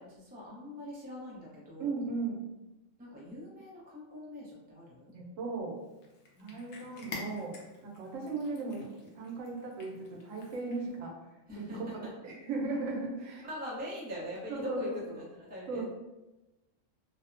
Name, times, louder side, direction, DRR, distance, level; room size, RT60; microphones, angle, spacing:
voice 1, 0.0-1.9 3.0-5.1 6.4-6.6 8.2-8.3 10.8-10.9 11.5-12.3 13.2-15.8, equal, 15° right, -5 dB, 0.3 m, -43 dB
voice 2, 1.8-2.4 5.1-5.8 6.4-11.1 11.6-11.8 12.2-13.4 14.5-14.8 15.7-15.8, right 3 dB, 80° right, 0 dB, 1.0 m, -37 dB
Cat, 5.8-11.0, left 2 dB, 70° left, 0.8 m, -49 dB
2.7 x 2.0 x 2.5 m, 1.0 s
omnidirectional pair, 1.3 m